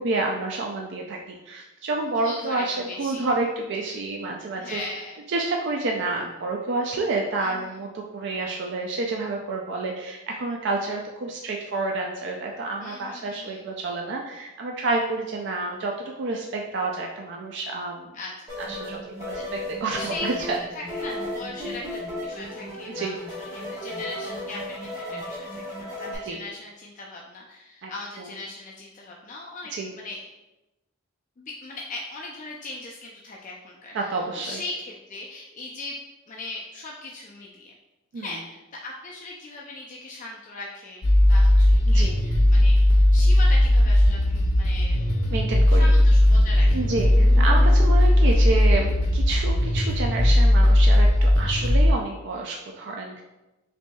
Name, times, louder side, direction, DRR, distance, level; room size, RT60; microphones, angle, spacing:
voice 1, 0.0-4.8 5.3-18.1 18.6-20.6 22.9-23.2 26.3-26.4 27.8-27.9 28.2-28.3 29.7-29.9 33.9-34.6 38.1-38.3 41.9-42.1 45.3-45.9 46.7-53.2, right 3 dB, 55° right, 0 dB, 0.4 m, -29 dB
voice 2, 2.1-3.2 4.5-5.2 7.4-7.8 12.8-13.6 18.1-18.6 19.4-19.5 19.9-20.5 20.7-30.2 31.4-36.0 36.3-37.7 38.1-42.8 43.1-45.0 45.7-46.9, left 2 dB, 40° left, -2 dB, 0.4 m, -39 dB
sound 1, 18.5-26.2, left 1 dB, 15° right, 1.2 m, -34 dB
sound 2, 41.0-51.9, left 1 dB, 85° left, 0.7 m, -17 dB
Motorcycle, 45.6-48.9, left 1 dB, 60° left, 1.3 m, -40 dB
6.0 x 2.6 x 2.2 m, 1.0 s
head